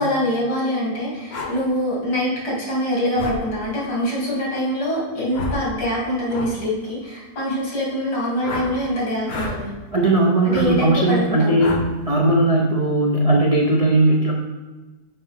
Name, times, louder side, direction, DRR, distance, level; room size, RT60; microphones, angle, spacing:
voice 1, 0.0-9.7 10.5-11.6, equal, 85° left, -7 dB, 3.2 m, -24 dB
sound 1, 1.3-1.5 3.2-3.4 5.3-5.6 6.3-6.5 8.4-8.7 9.2-9.6 10.5-10.7 11.6-11.9, left 2 dB, 50° left, 0.9 m, -29 dB
voice 2, 9.9-11.8 12.1-14.3, right 2 dB, 55° right, -2 dB, 0.4 m, -18 dB
6.8 x 5.5 x 3.5 m, 1.2 s
omnidirectional pair, 1.8 m